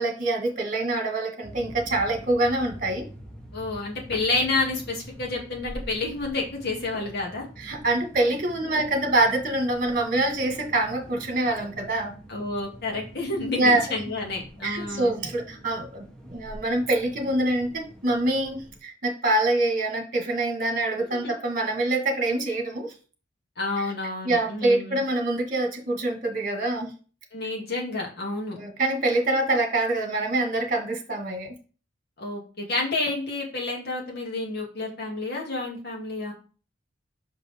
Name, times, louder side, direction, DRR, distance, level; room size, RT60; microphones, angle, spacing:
voice 1, 0.0-3.1 7.6-12.1 13.5-13.8 14.6-22.9 23.8-23.9 24.2-26.9 28.6-31.5, right 2 dB, 45° right, 3 dB, 1.6 m, -25 dB
sound 1, 1.4-18.8, equal, 5° left, 1.1 m, -45 dB
voice 2, 3.5-7.5 8.6-8.8 12.3-15.2 21.1-21.3 23.6-25.0 27.3-28.6 32.2-36.3, left 3 dB, 60° left, -2 dB, 2.1 m, -29 dB
5.7 x 5.3 x 3.5 m, 0.37 s
head